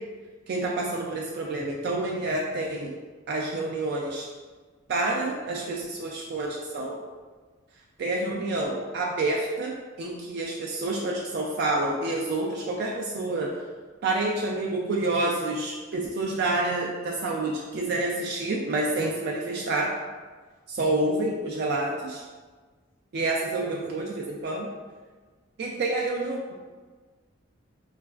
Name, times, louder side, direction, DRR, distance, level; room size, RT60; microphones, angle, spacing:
voice 1, 0.5-2.9 3.3-4.3 4.9-7.0 8.0-13.6 14.0-19.9 20.7-22.2 23.1-24.7 25.6-26.7, right 2 dB, 60° right, -2 dB, 0.3 m, -28 dB
3.9 x 2.3 x 2.3 m, 1.4 s
head